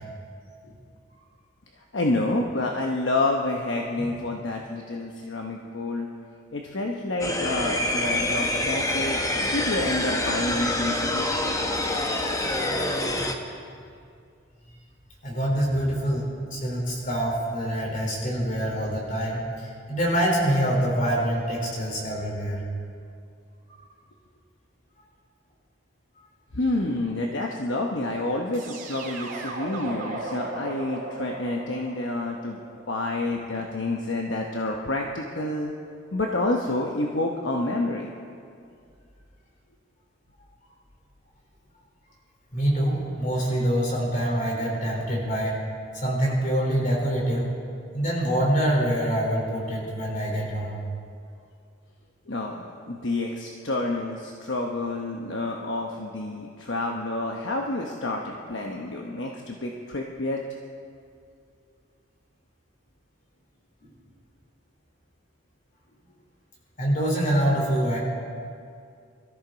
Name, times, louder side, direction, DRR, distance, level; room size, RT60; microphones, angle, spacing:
voice 1, 1.9-6.1 6.5-11.6 26.5-32.6 32.9-35.7 36.1-38.1 52.3-60.4, left 2 dB, 65° left, 1 dB, 1.0 m, -28 dB
sound 1, 7.2-13.4, left 1 dB, 15° left, 0.9 m, -26 dB
voice 2, 15.2-22.6 42.5-45.6 46.0-47.5 47.9-50.8 66.8-68.0, right 1 dB, 40° left, -2 dB, 4.0 m, -25 dB
sound 2, 28.5-33.5, right 2 dB, 45° right, 2.9 m, -37 dB
23.0 x 14.0 x 4.0 m, 2.3 s
head